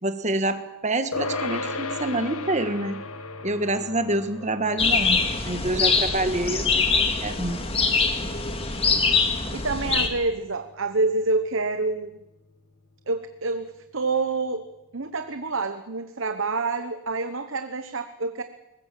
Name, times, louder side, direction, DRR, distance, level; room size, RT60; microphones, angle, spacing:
voice 1, 0.0-3.0 3.4-7.6, right 1 dB, 30° right, 10 dB, 1.6 m, -27 dB
sound 1, 1.1-10.8, left 3 dB, 80° left, 2.0 m, -37 dB
sound 2, 4.8-10.1, left 4 dB, 25° left, 2.2 m, -23 dB
voice 2, 9.5-12.2 13.1-14.7 14.9-18.4, right 3 dB, 60° right, 9 dB, 1.0 m, -27 dB
22.5 x 20.5 x 7.7 m, 0.98 s
head